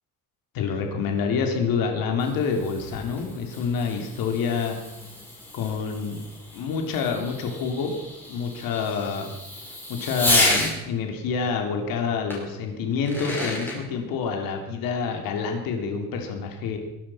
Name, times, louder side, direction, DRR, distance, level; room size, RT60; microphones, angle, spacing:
voice 1, 0.5-4.8 5.5-6.2 6.5-7.9 8.3-9.4 9.9-16.8, left 5 dB, 75° left, 3 dB, 3.4 m, -27 dB
Fireworks, 1.9-10.7 12.3-12.4 12.9-13.8, left 1 dB, 5° left, 5.5 m, -30 dB
22.5 x 11.5 x 5.7 m, 0.97 s
cardioid pair, 180°, 34 cm